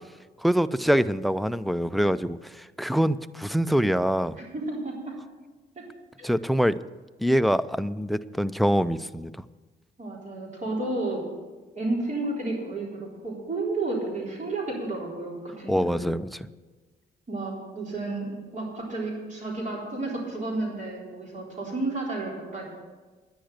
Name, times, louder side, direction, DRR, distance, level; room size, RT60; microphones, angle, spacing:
voice 1, 0.4-4.4 6.2-6.8 7.2-9.3 15.7-16.5, equal, ahead, 16 dB, 0.4 m, -24 dB
voice 2, 4.3-5.1 5.8-5.9 6.2-6.3 10.0-11.2 11.7-16.1 17.3-22.6, right 2 dB, 40° right, -3 dB, 3.8 m, -32 dB
10.5 x 10.0 x 6.5 m, 1.3 s
cardioid pair, 90°, 20 cm